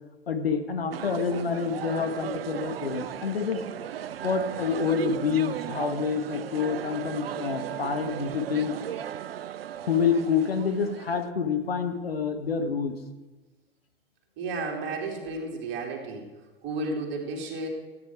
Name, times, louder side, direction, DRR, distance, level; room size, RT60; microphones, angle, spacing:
voice 1, 0.3-3.6 4.2-8.8 9.8-13.0, left 6 dB, 80° left, 7 dB, 1.1 m, -27 dB
sound 1, 0.9-11.3, right 10 dB, 75° right, 0.5 m, -36 dB
voice 2, 14.4-16.3 16.6-17.7, right 3 dB, 40° right, 1 dB, 2.6 m, -32 dB
13.5 x 9.2 x 4.6 m, 1.1 s
figure-of-eight pair, 90°, 30 cm